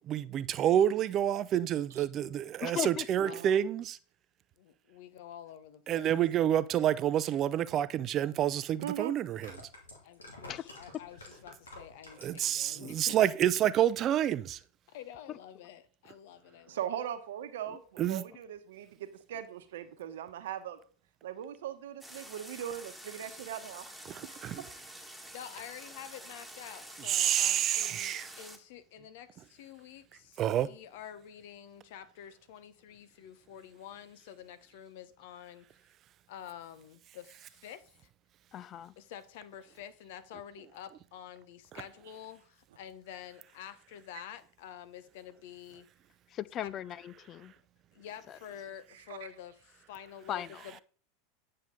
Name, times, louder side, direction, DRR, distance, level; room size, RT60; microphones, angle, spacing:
voice 1, 0.1-4.0 5.9-9.5 12.2-14.6 18.0-18.2 24.1-24.6 27.0-28.3 30.4-30.7, right 11 dB, 40° right, 0.5 m, -28 dB
voice 2, 2.6-3.1 10.5-10.6 17.7-17.8 38.5-38.9 46.3-47.5 48.3-48.4 50.3-50.7, left 11 dB, 40° left, 0.4 m, -37 dB
voice 3, 3.2-3.6 8.8-9.1 16.7-20.8 21.2-23.9 24.2-24.6, right 10 dB, 70° right, 1.0 m, -40 dB
voice 4, 4.6-6.1 10.0-13.2 14.9-16.8 25.3-35.7 36.3-38.1 39.0-45.9 46.6-46.7 47.9-50.8, left 10 dB, 65° left, 0.9 m, -48 dB
sound 1, 8.2-8.3 9.2-12.7 13.0-13.5 13.8-13.9, left 2 dB, 85° left, 2.5 m, -49 dB
sound 2, 22.0-28.6, right 1 dB, ahead, 1.9 m, -48 dB
9.4 x 6.6 x 3.8 m
hypercardioid pair, 85°, 0 cm